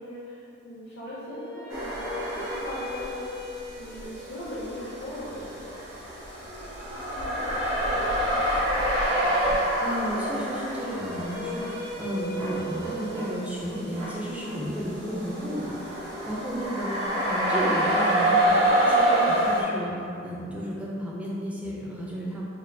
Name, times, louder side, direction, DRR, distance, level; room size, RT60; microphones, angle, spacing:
voice 1, 0.0-3.1 3.8-5.9 6.2-8.7 16.5-16.9, left 1 dB, 60° left, -8 dB, 0.6 m, -40 dB
sound 1, 1.1-7.2 10.5-16.6, left 1 dB, 45° right, 0.7 m, -40 dB
sound 2, 1.7-3.2 3.6-19.6, right 1 dB, 75° right, 0.9 m, -27 dB
voice 2, 9.8-16.9 17.2-22.4, equal, 5° right, -5 dB, 0.4 m, -33 dB
4.3 x 2.3 x 2.6 m, 2.7 s
head